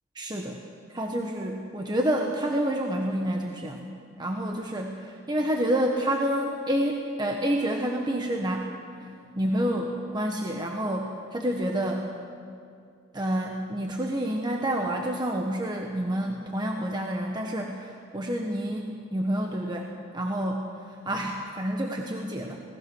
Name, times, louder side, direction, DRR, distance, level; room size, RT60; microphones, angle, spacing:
voice 1, 0.1-0.6 0.9-3.8 4.2-8.7 9.4-12.1 13.1-22.6, right 1 dB, 20° right, 1 dB, 1.3 m, -28 dB
26.0 x 18.5 x 6.3 m, 2.4 s
head